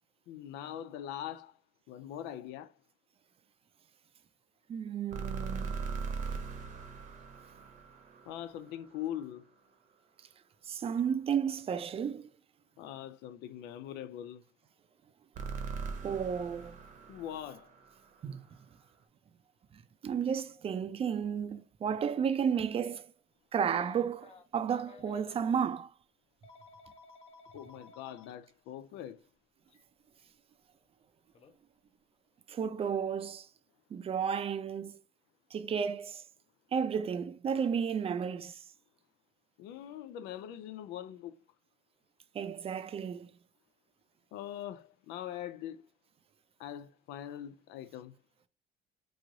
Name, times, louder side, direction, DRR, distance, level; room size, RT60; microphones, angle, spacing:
voice 1, 0.3-1.6 1.9-2.7 8.3-9.5 12.8-14.4 17.1-17.7 27.5-29.2 39.6-41.4 44.3-45.8 46.6-48.2, left 11 dB, 90° left, 0.4 m, -42 dB
voice 2, 4.7-5.8 10.6-12.3 16.0-16.8 18.2-18.5 19.7-23.0 23.5-25.9 32.5-33.5 33.9-35.0 35.5-36.2 36.7-38.6 42.3-43.3, right 7 dB, 35° right, 0.4 m, -33 dB
sound 1, 5.1-9.2 15.3-18.5, right 5 dB, 50° right, 0.8 m, -40 dB
Telephone, 23.7-25.6 26.4-28.3 29.7-29.8 31.3-31.5, left 4 dB, 35° left, 0.6 m, -54 dB
3.1 x 2.4 x 3.8 m
cardioid pair, 110°, 17 cm